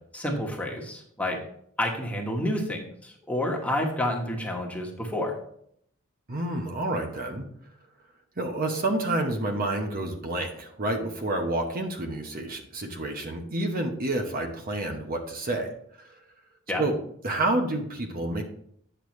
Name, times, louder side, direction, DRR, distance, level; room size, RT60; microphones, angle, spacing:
voice 1, 0.1-1.4 1.8-5.3 16.7-16.9, left 1 dB, 5° left, 0 dB, 1.2 m, -29 dB
voice 2, 6.3-7.5 8.4-15.7 16.0-16.2 16.8-16.9 17.2-18.4, right 2 dB, 45° right, 3 dB, 0.9 m, -29 dB
8.9 x 6.4 x 3.2 m, 0.67 s
head